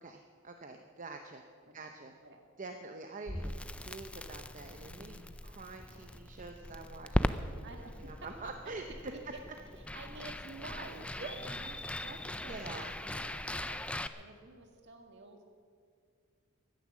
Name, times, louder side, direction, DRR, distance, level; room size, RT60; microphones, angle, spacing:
voice 1, 0.0-1.4 1.7-2.1 2.6-5.2 5.4-7.7 8.0-8.8 11.2-11.3 12.5-12.9, right 3 dB, 35° right, 5 dB, 0.7 m, -46 dB
Crackle, 3.3-14.1, left 1 dB, 5° left, 0.4 m, -39 dB
voice 2, 4.8-5.3 7.6-8.3 8.9-9.4 9.8-15.4, right 2 dB, 55° right, 3 dB, 2.0 m, -50 dB
15.5 x 11.0 x 7.3 m, 2.1 s
head